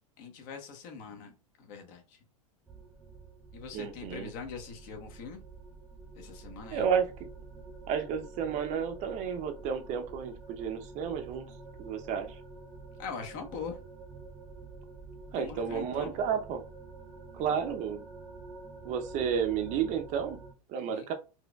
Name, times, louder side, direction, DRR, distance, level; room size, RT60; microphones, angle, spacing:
voice 1, 0.2-2.2 3.5-5.4 6.1-6.9 13.0-13.8 15.3-16.1 17.4-17.5 20.8-21.1, left 5 dB, 45° left, 4 dB, 1.0 m, -42 dB
sound 1, 2.7-20.5, right 3 dB, 5° right, 0.7 m, -48 dB
voice 2, 3.7-4.3 6.7-7.1 7.9-11.5 11.8-12.4 15.3-16.6 17.3-18.0 18.8-20.4 20.7-21.1, right 7 dB, 40° right, 7 dB, 0.6 m, -31 dB
4.4 x 2.4 x 2.2 m, 0.31 s
hypercardioid pair, 120°, 19 cm